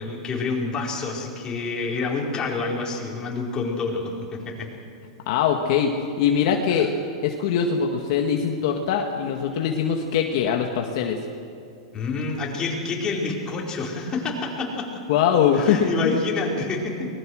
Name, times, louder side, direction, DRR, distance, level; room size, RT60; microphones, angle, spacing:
voice 1, 0.0-4.7 6.8-6.9 11.9-15.0 15.5-17.1, left 3 dB, 25° left, -2 dB, 4.7 m, -28 dB
voice 2, 5.3-5.9 6.2-6.9 7.2-11.2 15.1-16.2, left 7 dB, 60° left, 2 dB, 1.8 m, -22 dB
23.5 x 20.0 x 6.4 m, 2.5 s
hypercardioid pair, 135°, 3 cm